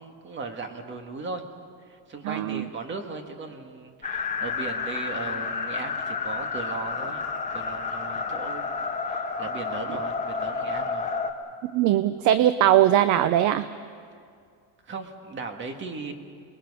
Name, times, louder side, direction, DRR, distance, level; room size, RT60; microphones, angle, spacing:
voice 1, 0.0-1.4 1.8-7.2 7.5-8.7 9.0-11.1 14.8-16.1, right 4 dB, 25° right, 5 dB, 1.9 m, -37 dB
voice 2, 2.2-2.7 11.6-13.7, right 12 dB, 45° right, 13 dB, 0.6 m, -20 dB
sound 1, 4.0-11.3, left 4 dB, 20° left, 1.3 m, -30 dB
28.5 x 21.0 x 5.6 m, 2.2 s
cardioid pair, 155°, 41 cm